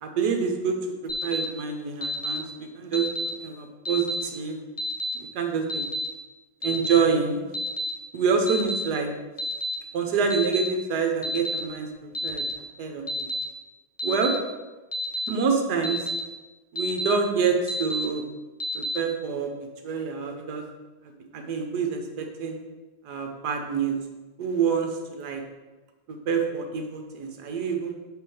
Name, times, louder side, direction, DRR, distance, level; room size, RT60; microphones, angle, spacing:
voice 1, 0.0-0.7 1.2-3.0 3.4-4.6 5.1-5.8 6.6-7.4 8.1-9.1 9.9-12.4 12.8-13.3 14.0-14.3 15.3-16.1 16.7-18.2 18.7-19.5 19.8-20.6 21.3-22.6 23.0-24.0 24.4-25.4 26.1-27.9, right 5 dB, 65° right, 4 dB, 1.4 m, -26 dB
Alarm, 1.1-1.4 2.0-2.4 2.9-3.3 3.8-4.2 4.8-5.1 5.7-6.0 6.6-7.0 7.5-7.9 8.5-8.8 9.4-9.7 10.3-10.7 11.2-11.6 12.1-12.5 13.1-13.4 14.0-14.3 14.9-15.3 15.8-16.2 16.7-17.1 17.7-18.0 18.6-19.0, equal, 25° left, 0.8 m, -29 dB
6.1 x 5.0 x 4.9 m, 1.2 s
omnidirectional pair, 1.9 m